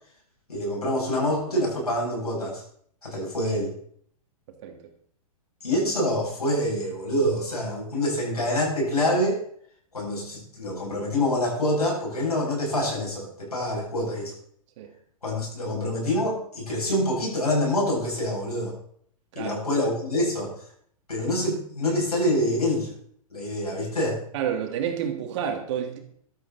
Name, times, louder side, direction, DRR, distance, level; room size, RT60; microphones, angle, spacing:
voice 1, 0.5-2.6 3.0-3.7 5.6-9.4 9.9-14.3 15.2-18.7 19.3-20.5 21.1-22.9 23.3-24.2, left 1 dB, 90° left, -2 dB, 8.0 m, -26 dB
voice 2, 24.3-26.0, right 8 dB, 50° right, 3 dB, 3.2 m, -29 dB
14.5 x 13.0 x 4.3 m, 0.64 s
figure-of-eight pair, 110°, 19 cm